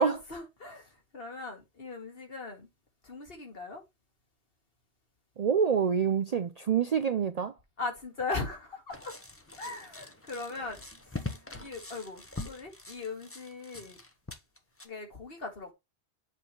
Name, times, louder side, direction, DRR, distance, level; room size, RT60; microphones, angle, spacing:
voice 1, 0.0-2.7 3.0-3.8 7.8-9.1 9.6-11.3 11.5-14.0 14.8-15.7, left 3 dB, 60° left, 2.1 m, -39 dB
voice 2, 5.4-7.5, right 7 dB, 50° right, 0.5 m, -26 dB
sound 1, 8.9-14.9, left 2 dB, 15° left, 0.8 m, -43 dB
7.5 x 3.4 x 5.6 m
omnidirectional pair, 1.1 m